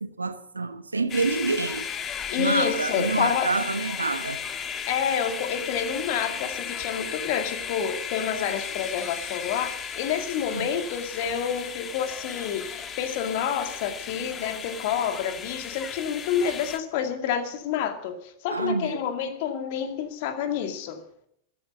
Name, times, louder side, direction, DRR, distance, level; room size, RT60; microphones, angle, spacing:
voice 1, 0.0-1.8 2.4-4.4 10.5-10.7 18.5-19.0, right 3 dB, 80° right, 1.1 m, -27 dB
sound 1, 1.1-16.8, left 7 dB, 25° left, 1.5 m, -35 dB
voice 2, 2.3-3.5 4.9-21.0, left 8 dB, 50° left, 2.2 m, -28 dB
14.0 x 11.5 x 7.9 m
figure-of-eight pair, 90°, 0 cm